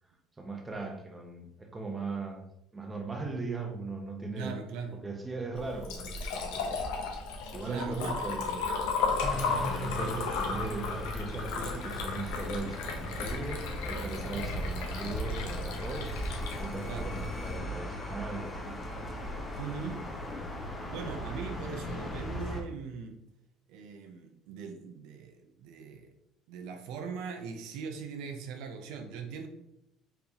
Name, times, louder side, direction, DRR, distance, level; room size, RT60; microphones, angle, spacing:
voice 1, 0.4-2.4 2.7-4.6 5.0-7.1 7.5-8.7 9.5-16.2 16.6-18.7, right 3 dB, 20° right, 3 dB, 0.8 m, -39 dB
voice 2, 4.4-5.0 7.6-8.2 9.9-10.1 16.8-17.1 19.6-20.1 20.9-23.2 23.7-26.1 26.5-29.5, right 5 dB, 80° right, 5 dB, 0.5 m, -40 dB
Liquid, 5.6-17.6, left 4 dB, 85° left, 0.7 m, -34 dB
sound 1, 9.2-22.6, equal, 25° left, 0.9 m, -38 dB
4.6 x 3.3 x 2.8 m, 0.82 s
supercardioid pair, 100°, 0 cm